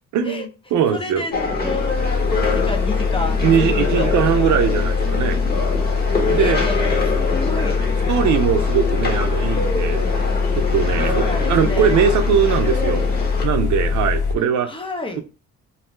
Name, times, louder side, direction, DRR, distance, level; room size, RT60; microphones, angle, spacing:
voice 1, 0.1-1.3 3.4-5.4 6.3-6.6 8.1-10.1 10.5-13.0 13.4-14.7, right 8 dB, 75° right, 0.5 m, -20 dB
voice 2, 0.9-1.3 1.6-2.0 2.3-4.5 6.3-7.8 10.9-12.0 14.3-15.2, left 2 dB, 15° left, 0.6 m, -31 dB
sound 1, 1.3-14.4, left 4 dB, 80° left, 0.6 m, -22 dB
sound 2, 1.3-13.4, left 3 dB, 30° left, 1.0 m, -25 dB
2.6 x 2.1 x 3.0 m
cardioid pair, 90°, 30 cm